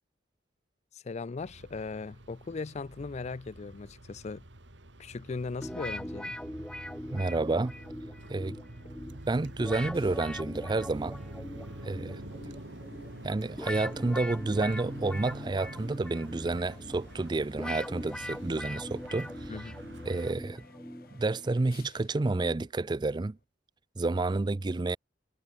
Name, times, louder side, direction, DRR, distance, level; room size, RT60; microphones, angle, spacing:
voice 1, 0.9-4.4 5.0-6.4 19.5-19.7, left 4 dB, 40° left, 0.4 m, -38 dB
sound 1, 1.4-20.4, right 1 dB, 80° right, 2.9 m, -46 dB
sound 2, 5.6-21.5, left 1 dB, 5° left, 0.8 m, -42 dB
voice 2, 7.1-7.7 8.3-8.6 9.3-11.2 11.8-12.2 13.2-19.3 20.1-20.6 21.1-23.4 24.0-25.0, right 3 dB, 25° right, 0.4 m, -30 dB
sound 3, 9.9-23.4, left 3 dB, 55° left, 2.3 m, -57 dB
head